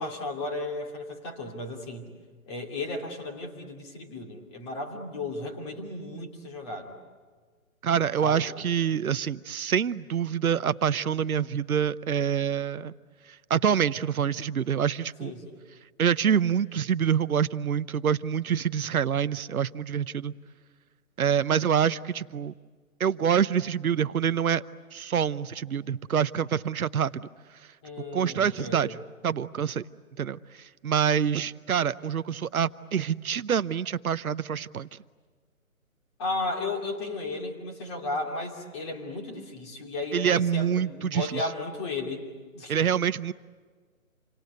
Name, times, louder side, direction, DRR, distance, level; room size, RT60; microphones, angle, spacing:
voice 1, 0.0-2.1 2.5-7.0 8.2-8.4 15.2-15.6 27.8-28.9 36.2-42.2 42.5-42.7, left 2 dB, 20° left, 2 dB, 2.7 m, -34 dB
voice 2, 7.8-12.9 13.5-15.3 16.0-20.3 21.2-22.5 23.0-24.6 24.9-27.3 28.1-29.0 29.2-29.8 30.2-34.9 40.1-41.4 42.7-43.3, right 8 dB, 80° right, 14 dB, 0.9 m, -26 dB
28.5 x 25.0 x 8.3 m, 1.5 s
hypercardioid pair, 165°, 42 cm